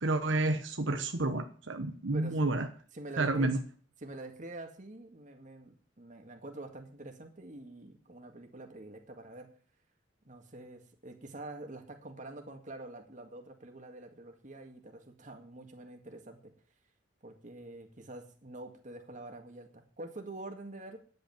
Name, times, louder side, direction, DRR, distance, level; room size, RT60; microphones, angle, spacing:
voice 1, 0.0-2.7 3.2-3.6, right 2 dB, 80° right, 6 dB, 1.1 m, -30 dB
voice 2, 2.1-2.4 2.9-3.5 4.0-9.5 10.2-16.5 17.2-21.0, right 2 dB, 40° right, 4 dB, 2.0 m, -46 dB
10.5 x 8.2 x 7.2 m, 0.42 s
head